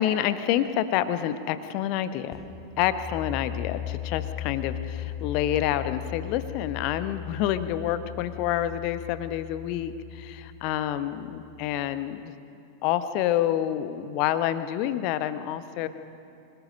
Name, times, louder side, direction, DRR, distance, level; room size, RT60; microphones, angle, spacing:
voice 1, 0.0-2.4 2.8-12.3 12.8-15.9, left 11 dB, 45° left, 12 dB, 0.9 m, -28 dB
sound 1, 2.3-11.9, left 11 dB, 20° left, 2.9 m, -38 dB
26.5 x 19.0 x 5.4 m, 2.6 s
figure-of-eight pair, 90°, 0 cm